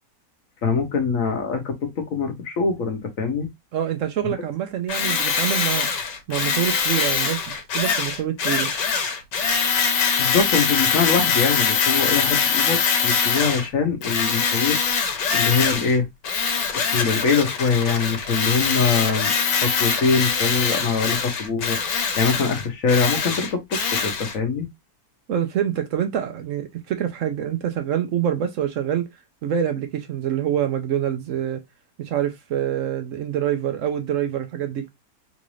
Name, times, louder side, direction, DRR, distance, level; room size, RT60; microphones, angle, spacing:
voice 1, 0.6-3.5 4.2-4.3 10.2-14.8 15.3-16.1 16.9-24.7, left 5 dB, 55° left, 1.2 m, -23 dB
voice 2, 3.7-5.9 6.3-8.7 25.3-29.1 29.4-31.6 32.0-34.9, right 10 dB, 65° right, 0.8 m, -26 dB
Tools, 4.9-13.7 14.0-16.0 16.2-24.3, left 6 dB, 90° left, 1.5 m, -23 dB
4.0 x 2.5 x 3.0 m
omnidirectional pair, 1.8 m